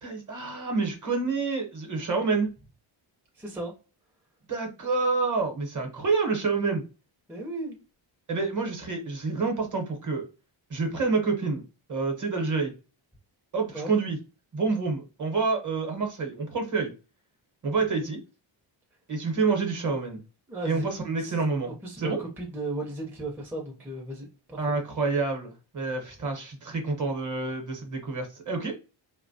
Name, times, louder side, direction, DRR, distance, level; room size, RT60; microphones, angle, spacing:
voice 1, 0.0-2.5 4.5-6.8 8.3-10.2 10.7-11.6 11.9-12.7 13.5-14.2 14.5-16.9 17.6-18.2 19.1-20.2 20.6-21.7 22.0-22.2 24.6-28.7, right 4 dB, 40° right, 0.8 m, -28 dB
voice 2, 3.3-3.8 7.3-7.8 13.7-13.9 20.5-20.9 21.2-21.4 21.7-24.7, right 2 dB, 5° right, 0.4 m, -36 dB
3.1 x 2.1 x 2.6 m
wide cardioid pair, 155°, 48 cm